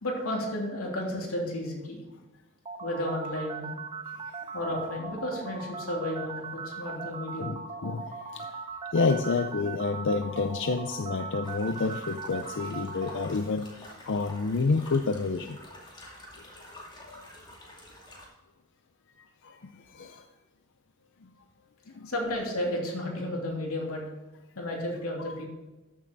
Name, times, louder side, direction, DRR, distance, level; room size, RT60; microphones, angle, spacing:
voice 1, 0.0-2.0 2.8-3.7 4.5-7.5 22.0-24.0 24.5-25.4, left 1 dB, 90° left, -1 dB, 3.0 m, -32 dB
sound 1, 2.6-13.3, right 5 dB, 25° right, 0.7 m, -39 dB
voice 2, 7.4-8.6 8.9-15.6 17.0-17.2 19.4-20.3 21.9-22.1 25.2-25.4, left 4 dB, 60° left, 6 dB, 0.5 m, -29 dB
sound 2, 11.4-18.3, left 1 dB, 20° left, 2.5 m, -48 dB
13.5 x 7.5 x 4.0 m, 1.2 s
head